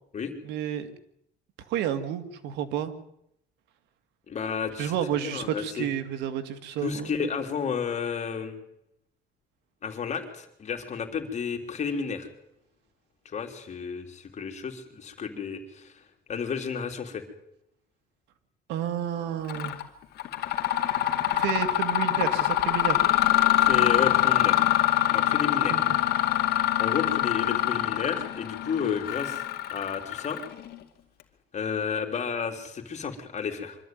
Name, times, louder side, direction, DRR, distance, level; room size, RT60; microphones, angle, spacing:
voice 1, 0.4-0.9 1.7-2.9 4.8-7.3 18.7-19.8 21.3-23.0 25.7-25.8, right 10 dB, 90° right, 10 dB, 2.1 m, -31 dB
voice 2, 4.3-4.9 5.2-5.9 6.8-8.6 9.8-12.3 13.3-15.9 16.3-17.2 23.6-24.6 25.1-25.8 26.8-29.4 29.7-30.4 31.5-33.8, left 6 dB, 45° left, 5 dB, 3.7 m, -32 dB
Mechanisms, 19.5-19.8 20.2-30.7, left 13 dB, 70° left, 2.4 m, -24 dB
25.0 x 13.5 x 9.4 m, 0.78 s
cardioid pair, 110°, 17 cm